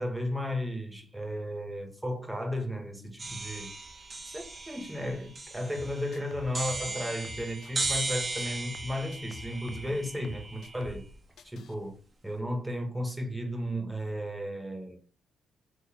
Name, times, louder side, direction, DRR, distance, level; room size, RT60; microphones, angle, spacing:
voice 1, 0.0-3.7 4.2-11.0 11.4-12.0 12.2-15.0, equal, 5° right, 1.3 m, -34 dB
sound 1, 3.2-11.1, right 3 dB, 30° right, 1.0 m, -37 dB
sound 2, 5.7-8.1 8.4-11.1 11.4-11.7, left 5 dB, 65° left, 0.5 m, -48 dB
4.1 x 2.8 x 4.3 m
cardioid pair, 90°, 0 cm